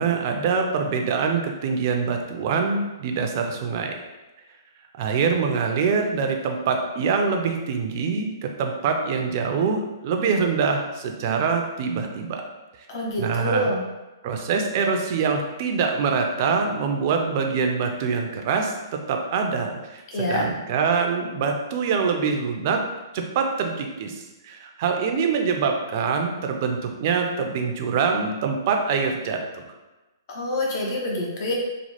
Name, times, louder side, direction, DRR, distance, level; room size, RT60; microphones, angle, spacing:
voice 1, 0.0-4.0 5.0-12.4 13.2-13.7 14.2-18.7 19.1-22.8 23.1-29.6, right 5 dB, 45° right, 3 dB, 0.4 m, -24 dB
voice 2, 12.9-13.8 20.1-20.5 30.3-31.5, left 1 dB, 50° left, -1 dB, 0.6 m, -26 dB
3.1 x 2.0 x 2.9 m, 1.1 s
hypercardioid pair, 130°, 2 cm